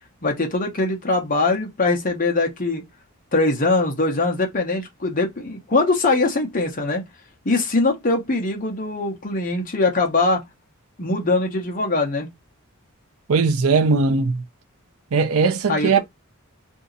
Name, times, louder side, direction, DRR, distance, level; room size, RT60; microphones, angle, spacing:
voice 1, 0.2-2.8 3.3-7.0 7.4-10.4 11.0-12.3 15.7-16.0, left 3 dB, 40° left, 0.8 m, -22 dB
voice 2, 13.3-14.4 15.1-16.0, right 4 dB, 75° right, 0.5 m, -19 dB
2.8 x 2.7 x 3.9 m
head